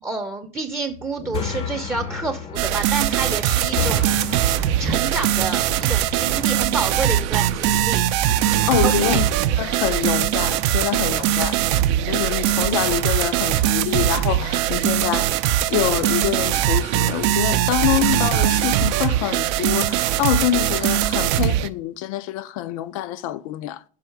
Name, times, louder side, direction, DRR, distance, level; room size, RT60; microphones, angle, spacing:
voice 1, 0.0-4.5 4.8-8.0 8.8-9.2, right 3 dB, 15° right, 0.5 m, -29 dB
sound 1, 0.9-9.6, left 7 dB, 35° left, 0.5 m, -34 dB
sound 2, 2.6-21.7, right 12 dB, 70° right, 0.4 m, -21 dB
voice 2, 8.7-9.2 9.6-11.6 12.1-15.3 15.7-23.8, left 13 dB, 80° left, 0.5 m, -25 dB
5.6 x 4.8 x 4.5 m
supercardioid pair, 125°, 17 cm